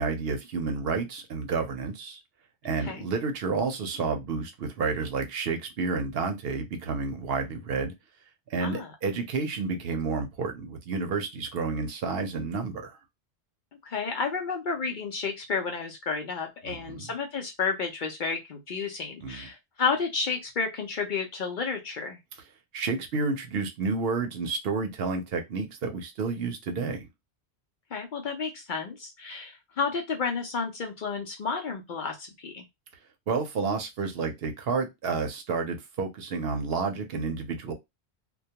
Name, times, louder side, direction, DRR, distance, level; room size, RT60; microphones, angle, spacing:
voice 1, 0.0-2.2 2.6-7.9 8.5-13.0 16.6-17.1 19.2-19.5 22.7-27.1 33.3-37.7, right 4 dB, 70° right, 0.8 m, -30 dB
voice 2, 13.8-22.2 27.9-32.6, left 5 dB, 60° left, 0.6 m, -31 dB
2.2 x 2.2 x 2.7 m
omnidirectional pair, 1.1 m